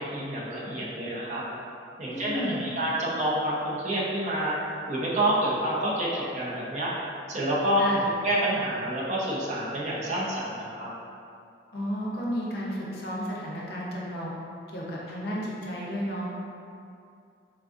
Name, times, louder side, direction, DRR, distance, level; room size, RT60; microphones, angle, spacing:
voice 1, 0.0-1.4 2.0-4.6 4.9-6.9 7.3-7.8 8.2-10.9, right 1 dB, 40° right, -5 dB, 0.5 m, -28 dB
voice 2, 2.1-2.6 7.8-8.0 11.7-14.3 14.7-16.3, equal, 60° left, -5 dB, 0.5 m, -32 dB
3.5 x 2.3 x 2.5 m, 2.5 s
head